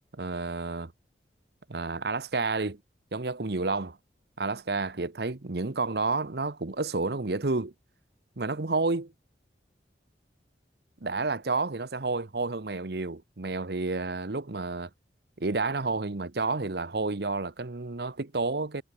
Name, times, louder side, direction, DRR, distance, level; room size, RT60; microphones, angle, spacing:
voice 1, 0.1-0.9 1.7-2.8 3.1-4.0 4.4-7.7 8.4-9.1 11.0-14.9 15.4-18.8, right 3 dB, 65° right, 1.0 m, -30 dB
head